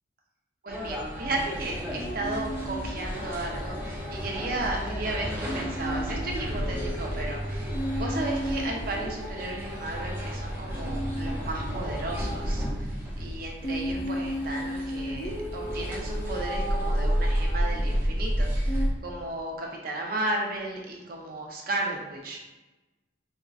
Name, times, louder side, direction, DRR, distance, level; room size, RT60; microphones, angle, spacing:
voice 1, 0.6-22.4, right 2 dB, 50° right, 0 dB, 0.6 m, -34 dB
sound 1, 0.7-18.9, equal, 10° right, 0.6 m, -31 dB
sound 2, 1.7-4.6 4.9-5.0 5.4-12.8 13.6-17.8 18.7-18.9, equal, 60° left, 0.8 m, -36 dB
4.3 x 2.5 x 2.3 m, 1.1 s
head